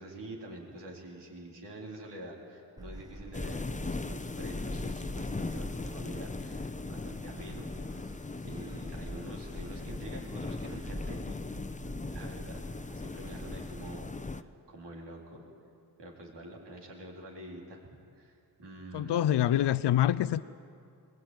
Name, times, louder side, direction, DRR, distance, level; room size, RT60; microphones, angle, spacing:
voice 1, 0.0-11.4 12.1-12.7 12.9-15.4 16.0-17.8 18.2-19.4, right 1 dB, 80° right, 4.0 m, -46 dB
Gull seagull, 2.8-14.0, right 1 dB, 10° right, 1.1 m, -46 dB
sound 1, 3.3-14.4, left 3 dB, 20° left, 0.8 m, -39 dB
voice 2, 18.9-20.4, left 12 dB, 80° left, 0.6 m, -26 dB
21.0 x 19.5 x 9.3 m
cardioid pair, 55°, 41 cm